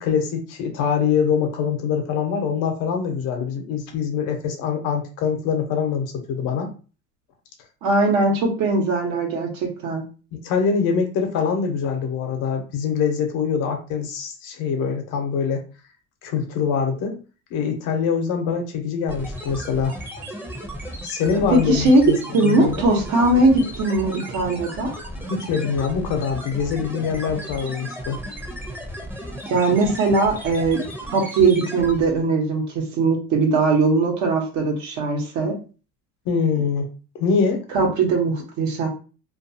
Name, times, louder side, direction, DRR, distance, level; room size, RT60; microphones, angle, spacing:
voice 1, 0.0-6.7 10.4-15.6 16.2-17.2 17.5-19.9 21.0-22.9 25.3-28.2 36.2-36.9 37.1-37.6, left 6 dB, 75° left, 4 dB, 0.9 m, -24 dB
voice 2, 7.8-9.5 9.8-10.0 21.5-22.0 22.3-24.9 29.5-30.8 31.1-35.5 37.7-38.9, right 3 dB, 65° right, 2 dB, 1.0 m, -20 dB
sound 1, 19.1-32.2, equal, 5° right, 0.7 m, -35 dB
2.5 x 2.3 x 2.7 m, 0.35 s
supercardioid pair, 105°, 31 cm